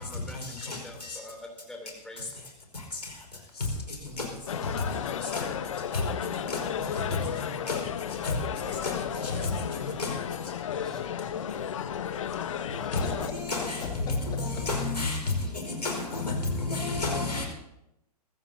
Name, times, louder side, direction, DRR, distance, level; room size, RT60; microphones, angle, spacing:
voice 1, 0.0-2.4 6.0-6.2 10.7-13.1 15.2-15.3, left 1 dB, 5° left, 3.2 m, -48 dB
sound 1, 4.5-13.3, left 8 dB, 55° left, 1.0 m, -33 dB
voice 2, 12.7-13.4 13.8-14.4 17.3-17.4, left 4 dB, 20° left, 1.8 m, -42 dB
voice 3, 14.7-15.1 15.8-16.4 16.7-17.5, left 3 dB, 75° left, 5.0 m, -29 dB
23.0 x 15.5 x 2.8 m
figure-of-eight pair, 110°, 20 cm